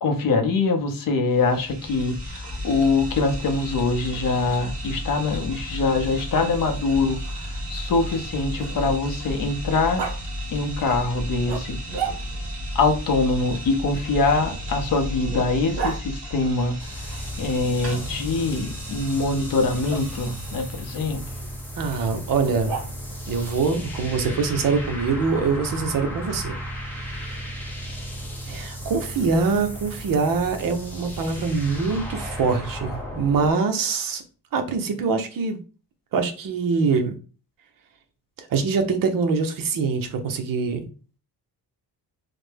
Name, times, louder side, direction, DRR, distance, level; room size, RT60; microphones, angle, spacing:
voice 1, 0.0-10.0 10.5-11.8 12.7-16.8 17.0-21.2, left 3 dB, 55° left, 0.6 m, -24 dB
sound 1, 1.3-21.0, equal, 35° right, 1.2 m, -34 dB
Growling, 5.9-9.3 10.0-10.2 11.4-12.5 13.9-16.0 17.9-18.6 19.9-20.0 22.4-23.2, right 5 dB, 70° right, 1.0 m, -35 dB
sound 2, 16.8-33.5, equal, 5° left, 0.6 m, -35 dB
voice 2, 21.8-22.7 23.3-27.7 28.5-34.2 34.5-35.6 36.1-37.2 38.4-40.9, right 4 dB, 55° right, 0.6 m, -24 dB
3.3 x 2.1 x 3.3 m
wide cardioid pair, 170°, 40 cm